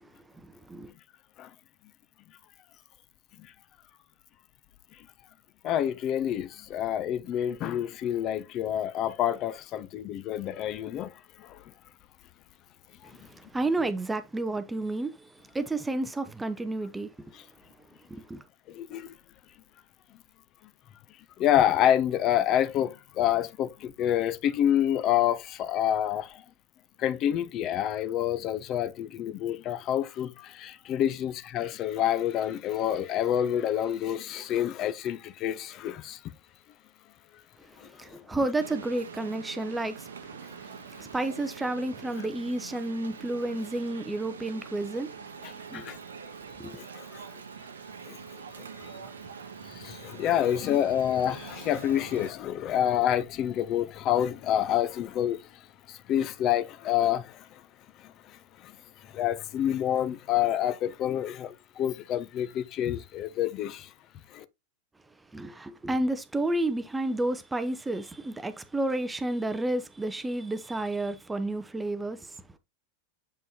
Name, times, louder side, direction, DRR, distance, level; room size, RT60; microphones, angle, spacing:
voice 1, 0.3-0.9 13.0-17.1 18.1-18.4 38.0-45.1 45.7-45.9 46.6-46.8 65.3-72.4, right 2 dB, 10° right, 0.6 m, -31 dB
voice 2, 5.6-11.1 11.4-11.6 18.7-19.1 21.4-26.4 27.0-36.2 37.8-38.2 45.4-46.0 46.7-47.3 48.1-48.4 48.8-49.1 49.7-55.4 55.9-57.6 58.0-58.1 58.6-58.7 59.0-63.9 64.3-64.4, left 11 dB, 35° left, 0.6 m, -28 dB
sound 1, 38.6-52.3, right 6 dB, 70° right, 0.9 m, -44 dB
7.6 x 5.4 x 2.8 m
figure-of-eight pair, 90°, 0 cm